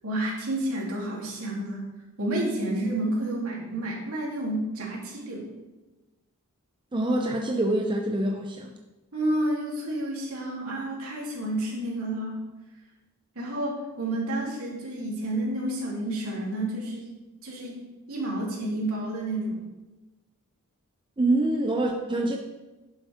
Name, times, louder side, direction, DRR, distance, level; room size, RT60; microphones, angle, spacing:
voice 1, 0.0-1.8 2.2-5.5 9.1-12.4 13.3-17.1 17.4-17.8 18.1-19.6, right 1 dB, 70° right, -4 dB, 3.2 m, -30 dB
voice 2, 6.9-8.7 21.2-22.4, right 1 dB, 20° right, 2 dB, 0.6 m, -25 dB
11.5 x 8.2 x 3.6 m, 1.1 s
head